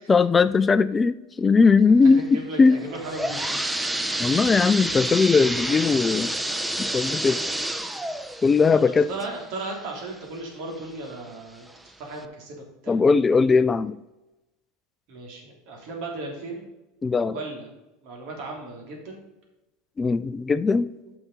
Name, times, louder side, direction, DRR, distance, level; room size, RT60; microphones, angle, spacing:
voice 1, 0.1-2.8 4.2-6.3 6.8-7.4 7.9-8.0 8.4-9.1 12.9-14.0 17.0-17.4 20.0-20.9, left 4 dB, 25° left, 15 dB, 0.4 m, -19 dB
voice 2, 2.2-3.6 8.7-13.0 15.1-16.6 17.3-17.7 18.0-19.2 21.1-21.2, right 2 dB, 60° right, 0 dB, 3.3 m, -36 dB
sound 1, 2.8-10.4 10.9-11.0 11.7-11.8 12.2-12.3, right 1 dB, 5° right, 0.7 m, -29 dB
8.9 x 5.8 x 5.6 m, 0.98 s
hypercardioid pair, 85°, 0 cm